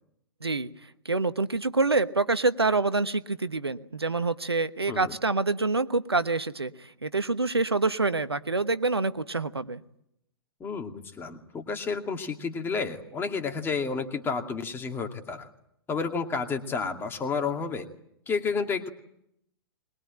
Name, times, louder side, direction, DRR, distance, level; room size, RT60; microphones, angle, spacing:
voice 1, 1.0-9.8, right 3 dB, 90° right, 13 dB, 1.1 m, -26 dB
voice 2, 10.6-15.5 15.9-17.9 18.3-18.9, left 5 dB, 15° left, 5 dB, 2.4 m, -31 dB
22.0 x 22.0 x 8.8 m, 0.77 s
figure-of-eight pair, 110°, 13 cm